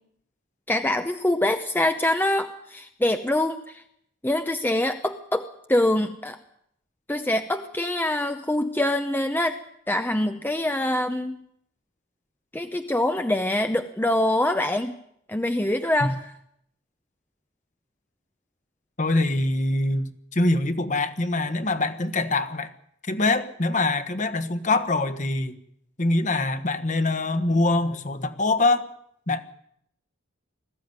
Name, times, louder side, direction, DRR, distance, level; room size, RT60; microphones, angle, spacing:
voice 1, 0.7-3.8 4.2-6.4 7.1-9.6 9.9-11.4 12.5-14.9 15.3-16.2, left 1 dB, 10° left, 0.8 m, -24 dB
voice 2, 19.0-22.7 23.1-25.6 26.0-28.9 29.3-29.4, left 2 dB, 40° left, 1.4 m, -24 dB
20.5 x 15.0 x 9.6 m
head